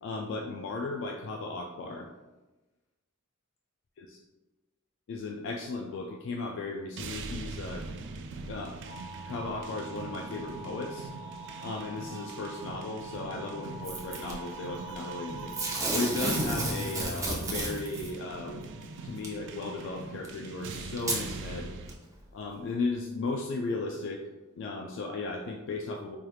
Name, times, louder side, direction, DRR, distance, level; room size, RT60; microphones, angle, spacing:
voice 1, 0.0-2.1 4.0-4.2 5.1-7.8 8.5-8.8 9.3-11.1 11.6-15.5 15.9-18.7 19.0-21.7 22.3-24.3 24.5-26.2, left 3 dB, 60° left, 1 dB, 0.3 m, -35 dB
sound 1, 7.0-21.9, right 3 dB, 60° right, 0.4 m, -42 dB
Alarm, 8.9-17.0, right 2 dB, 45° left, 0.9 m, -46 dB
Packing tape duct tape / Tearing, 13.8-14.3 15.5-18.1 19.2-19.3 20.2-20.3 21.0-21.2 21.9-22.0, right 2 dB, 15° right, 0.6 m, -31 dB
4.4 x 3.2 x 2.3 m, 1.1 s
head